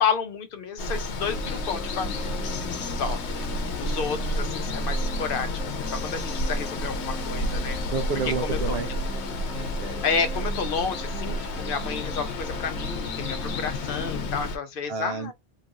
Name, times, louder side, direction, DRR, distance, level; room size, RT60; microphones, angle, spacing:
voice 1, 0.0-2.2 2.9-3.2 3.8-5.5 5.9-7.8 8.2-9.0 10.0-15.3, left 5 dB, 60° left, 0.7 m, -30 dB
Water, 0.8-14.6, left 1 dB, 85° left, 1.0 m, -30 dB
sound 1, 1.2-14.3, equal, ahead, 0.7 m, -40 dB
voice 2, 7.9-8.9 9.5-10.0 14.9-15.3, right 5 dB, 70° right, 0.8 m, -30 dB
2.9 x 2.4 x 2.7 m
omnidirectional pair, 1.1 m